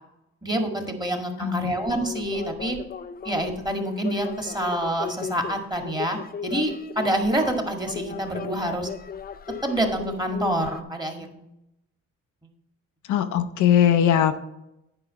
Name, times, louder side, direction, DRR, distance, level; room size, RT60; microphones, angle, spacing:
voice 1, 0.4-2.8 3.2-8.9 9.6-11.5, right 1 dB, 15° right, 3 dB, 1.7 m, -27 dB
voice 2, 1.4-1.7 13.1-14.5, left 9 dB, 75° left, 9 dB, 0.7 m, -20 dB
sound 1, 1.8-10.8, left 7 dB, 30° left, 0.5 m, -37 dB
9.9 x 4.8 x 5.6 m, 0.87 s
cardioid pair, 90°, 30 cm